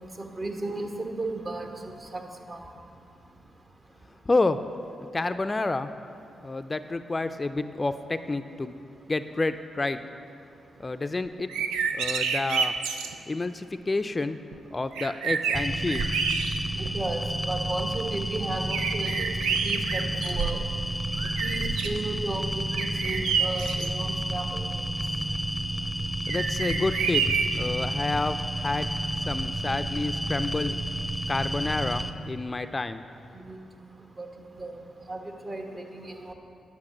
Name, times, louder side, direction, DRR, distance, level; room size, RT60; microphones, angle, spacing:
voice 1, 0.2-1.7 2.1-2.2 2.5-2.6 16.8-17.2 17.5-19.3 19.6-20.6 21.4-24.8 33.3-33.6 34.2-34.3 34.6-34.8 35.1-36.3, right 2 dB, 45° right, 3 dB, 1.4 m, -34 dB
voice 2, 4.3-4.6 5.1-5.9 6.4-8.8 9.1-10.0 10.8-11.5 11.9-12.7 13.3-14.4 14.7-16.1 26.3-28.9 29.3-30.8 31.3-33.0, left 3 dB, 35° left, 10 dB, 0.4 m, -29 dB
sound 1, 11.4-13.1 14.5-14.6 15.0-16.9 17.4-17.5 18.7-20.8 21.1-22.0 22.7-23.9 26.3-27.7, right 6 dB, 90° right, 0.4 m, -29 dB
sound 2, 15.5-32.1, right 1 dB, 10° right, 0.8 m, -31 dB
9.9 x 5.8 x 7.3 m, 2.8 s
supercardioid pair, 45°, 0 cm